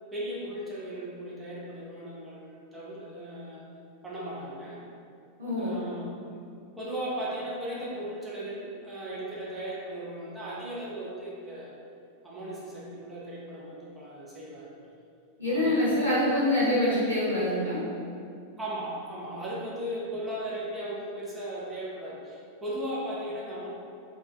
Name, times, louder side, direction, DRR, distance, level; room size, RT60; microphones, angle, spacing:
voice 1, 0.1-3.6 4.0-4.8 5.6-6.4 6.8-11.7 12.2-14.7 15.5-15.8 18.6-23.7, right 1 dB, 10° right, -7 dB, 0.6 m, -37 dB
voice 2, 5.4-5.8 15.4-17.8, left 1 dB, 90° right, -11 dB, 0.9 m, -25 dB
2.2 x 2.2 x 2.4 m, 2.4 s
figure-of-eight pair, 90°, 0 cm